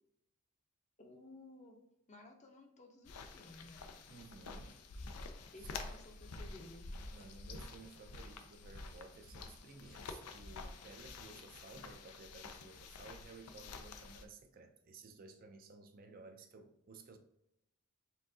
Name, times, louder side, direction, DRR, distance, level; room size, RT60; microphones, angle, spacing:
voice 1, 1.0-1.8 2.1-3.9 5.5-6.9, left 2 dB, 30° left, 0.6 m, -55 dB
sound 1, 3.0-14.2, left 3 dB, 90° left, 0.5 m, -49 dB
voice 2, 4.1-4.8 5.6-5.7 7.1-17.2, right 3 dB, 40° right, 0.4 m, -56 dB
4.4 x 3.6 x 2.7 m
head